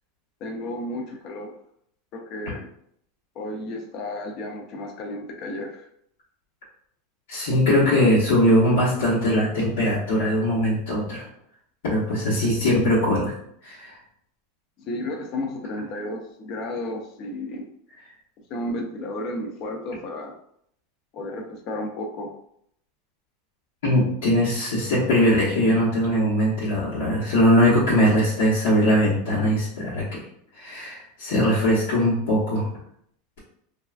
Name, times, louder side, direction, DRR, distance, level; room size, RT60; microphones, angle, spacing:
voice 1, 0.4-1.5 2.1-2.7 3.4-5.9 14.8-17.7 18.5-20.4 21.1-22.3, left 1 dB, 40° left, 3 dB, 0.4 m, -32 dB
voice 2, 7.3-11.2 11.8-13.3 13.6-14.0 23.8-30.3 30.5-32.7, equal, 85° left, -9 dB, 1.0 m, -21 dB
3.1 x 2.3 x 2.4 m, 0.69 s
supercardioid pair, 165°, 0 cm